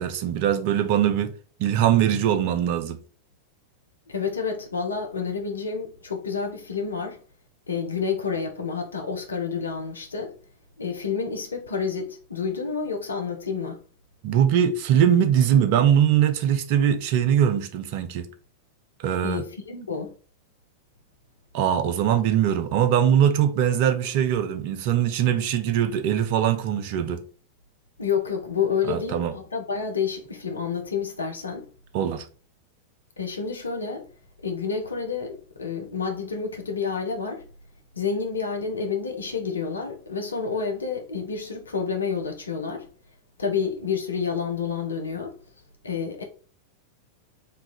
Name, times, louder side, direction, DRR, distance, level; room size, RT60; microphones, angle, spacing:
voice 1, 0.0-1.3 1.6-3.0 14.2-18.3 19.0-19.4 21.5-27.2 28.9-29.3 31.9-32.2, right 9 dB, 45° right, 0.5 m, -21 dB
voice 2, 4.1-7.2 7.7-10.3 10.8-13.8 19.2-20.1 28.0-31.7 33.2-34.1 34.4-37.4 37.9-42.9 43.4-45.3 45.8-46.2, left 6 dB, 75° left, 0.6 m, -29 dB
3.2 x 2.3 x 4.1 m
figure-of-eight pair, 90°, 0 cm